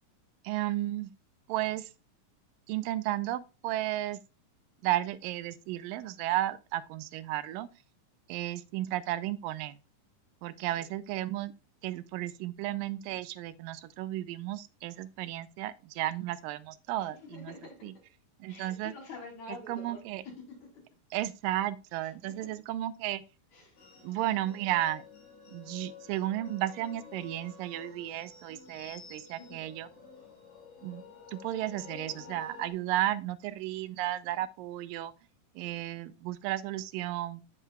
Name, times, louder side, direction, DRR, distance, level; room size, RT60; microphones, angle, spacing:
voice 1, 0.4-1.1 1.5-1.9 2.7-4.2 4.8-7.7 8.3-9.8 10.4-11.5 11.8-17.5 17.8-17.9 18.4-18.9 19.7-20.2 21.1-23.2 24.0-25.0 25.5-29.9 30.8-31.0 31.3-35.1 35.6-37.4, right 14 dB, 85° right, 2.2 m, -33 dB
voice 2, 17.0-17.9 18.5-20.7 22.0-22.5 23.5-23.9 29.3-29.7 35.6-35.8, left 3 dB, 55° left, 4.0 m, -48 dB
sound 1, 23.8-32.7, left 6 dB, 80° left, 5.4 m, -50 dB
13.0 x 4.9 x 2.3 m
omnidirectional pair, 4.0 m